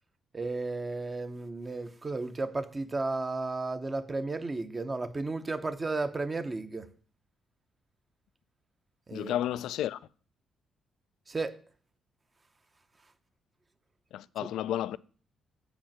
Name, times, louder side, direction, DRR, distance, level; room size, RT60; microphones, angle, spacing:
voice 1, 0.3-6.9 9.1-9.3 11.3-11.6 14.4-14.5, right 3 dB, 25° right, 0.8 m, -33 dB
voice 2, 9.1-10.0 14.1-15.0, left 12 dB, 85° left, 0.3 m, -32 dB
7.2 x 5.2 x 7.3 m
cardioid pair, 90°, 0 cm